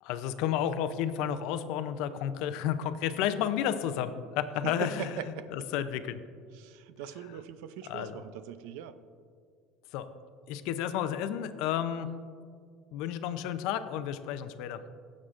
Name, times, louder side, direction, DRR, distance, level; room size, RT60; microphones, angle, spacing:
voice 1, 0.0-6.2 7.9-8.2 9.9-10.1 10.5-12.1 12.9-14.8, left 10 dB, 70° left, 11 dB, 0.5 m, -32 dB
voice 2, 4.6-5.7 6.5-9.0, right 9 dB, 80° right, 13 dB, 0.5 m, -40 dB
16.0 x 7.3 x 2.5 m, 2.1 s
cardioid pair, 145°, 0 cm